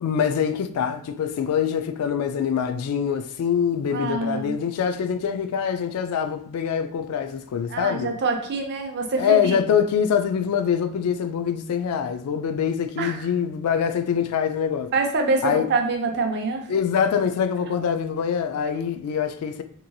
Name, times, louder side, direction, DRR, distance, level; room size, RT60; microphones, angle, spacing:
voice 1, 0.0-8.1 9.2-14.9 15.4-15.6 16.7-19.6, left 7 dB, 85° left, 0.3 m, -24 dB
voice 2, 3.9-4.5 7.7-9.6 13.0-13.3 14.9-16.7, right 3 dB, 50° right, 0.5 m, -25 dB
2.9 x 2.6 x 2.2 m
head